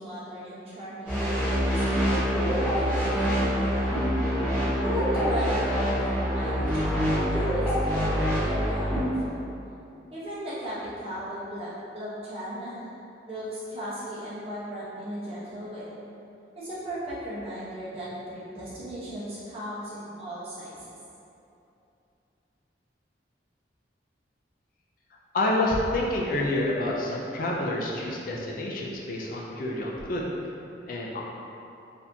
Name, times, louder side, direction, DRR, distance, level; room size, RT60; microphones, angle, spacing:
voice 1, 0.0-2.1 2.5-4.0 4.8-9.1 10.1-12.8 13.3-15.9 16.5-20.9, equal, 30° right, -10 dB, 0.9 m, -36 dB
sound 1, 1.0-9.0, equal, 5° right, 1.1 m, -25 dB
voice 2, 25.3-30.3 30.9-31.2, left 1 dB, 50° left, -3 dB, 0.4 m, -28 dB
4.0 x 2.8 x 2.7 m, 2.8 s
head